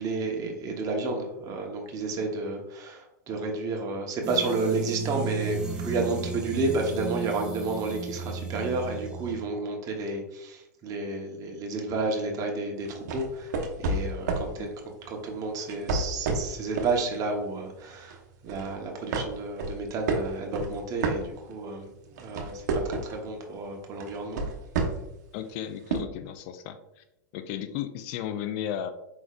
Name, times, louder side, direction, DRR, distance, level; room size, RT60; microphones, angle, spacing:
voice 1, 0.0-13.5 13.8-14.7 15.0-18.2 18.4-24.4, right 3 dB, 35° right, 1 dB, 1.1 m, -31 dB
sound 1, 4.2-9.4, right 4 dB, 10° right, 0.8 m, -34 dB
sound 2, 12.9-14.5 15.6-17.0 17.4-17.6 18.1-18.7 19.1-21.7 22.1-23.2 24.0-25.2 25.9-26.0, right 3 dB, 65° right, 1.0 m, -30 dB
voice 2, 25.3-27.0 27.3-28.9, left 10 dB, 50° left, 10 dB, 0.4 m, -35 dB
4.7 x 3.8 x 2.4 m, 0.89 s
hypercardioid pair, 110°, 10 cm